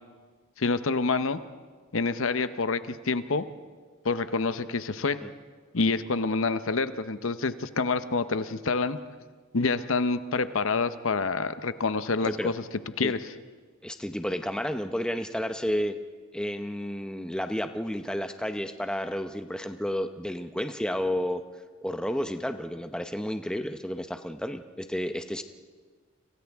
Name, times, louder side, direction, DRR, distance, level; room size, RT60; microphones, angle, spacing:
voice 1, 0.6-1.4 1.9-3.4 4.0-5.2 5.7-9.0 9.5-12.6 13.0-13.2, left 4 dB, 65° left, 12 dB, 0.8 m, -27 dB
voice 2, 12.2-12.5 13.0-13.1 13.8-16.0 16.3-21.4 21.8-25.4, equal, 5° left, 7 dB, 0.7 m, -31 dB
30.0 x 26.0 x 3.6 m, 1.5 s
head